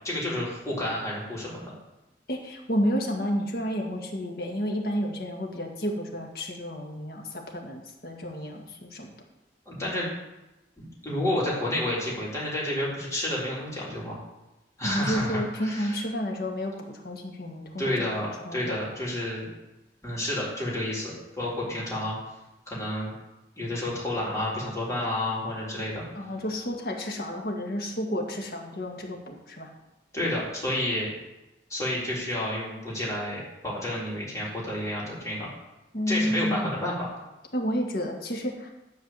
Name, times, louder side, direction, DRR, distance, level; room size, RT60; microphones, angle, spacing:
voice 1, 0.0-1.7 9.7-10.1 10.8-14.2 14.8-16.0 17.8-19.5 20.0-22.2 22.7-23.1 23.6-26.0 30.1-31.1 31.7-35.5 36.1-37.1, left 1 dB, 15° left, -7 dB, 3.7 m, -30 dB
voice 2, 2.3-9.1 14.8-18.1 18.5-18.9 26.1-29.7 35.9-36.7 37.5-38.7, equal, 55° left, 1 dB, 1.8 m, -31 dB
10.5 x 5.0 x 7.6 m, 0.99 s
head